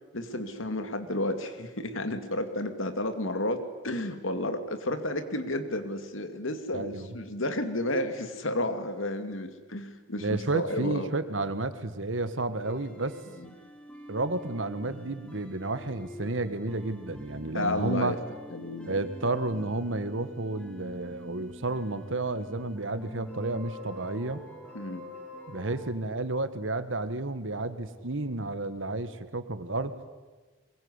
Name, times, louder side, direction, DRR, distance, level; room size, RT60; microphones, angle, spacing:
voice 1, 0.1-11.1 13.3-13.5 17.5-18.2 18.5-19.1 24.7-25.1, left 1 dB, 90° left, 8 dB, 2.5 m, -32 dB
voice 2, 6.7-7.1 10.2-13.2 14.1-18.1 18.9-24.4 25.5-29.9, right 2 dB, 80° right, 11 dB, 1.7 m, -31 dB
sound 1, 12.6-25.9, equal, 5° left, 2.6 m, -46 dB
22.5 x 22.0 x 9.8 m, 1.3 s
head